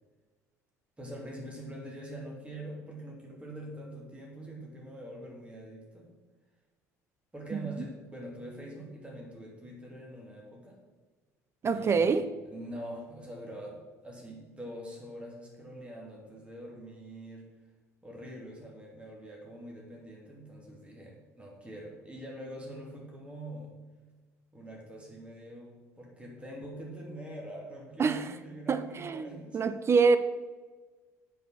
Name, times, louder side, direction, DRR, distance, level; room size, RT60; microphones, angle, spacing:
voice 1, 1.0-6.1 7.3-10.8 11.7-17.5 18.0-23.7 24.5-29.6, right 1 dB, 15° right, 2.9 m, -44 dB
voice 2, 7.5-7.8 11.6-12.3 28.0-28.3 28.7-30.2, right 5 dB, 30° right, 0.6 m, -26 dB
7.6 x 6.5 x 6.5 m
figure-of-eight pair, 55°, 9 cm